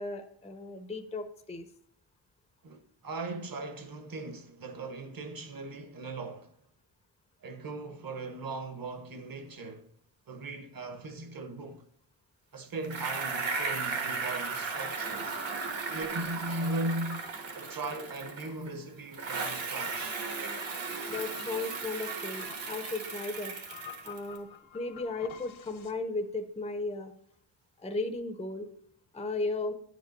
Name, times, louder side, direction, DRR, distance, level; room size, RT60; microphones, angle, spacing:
voice 1, 0.0-1.7 21.1-23.5 24.0-24.5 24.7-27.1 27.8-28.7 29.1-29.7, left 3 dB, 15° left, 0.5 m, -35 dB
voice 2, 2.6-6.5 7.4-9.9 10.3-11.9 12.5-15.4 15.9-17.2 17.5-20.2, right 2 dB, 45° right, 1.0 m, -38 dB
Bicycle, 12.8-18.7 19.1-24.4, right 4 dB, 70° right, 1.5 m, -36 dB
sound 1, 15.1-25.9, left 9 dB, 75° left, 1.1 m, -52 dB
9.8 x 5.2 x 3.9 m
wide cardioid pair, 120°, 47 cm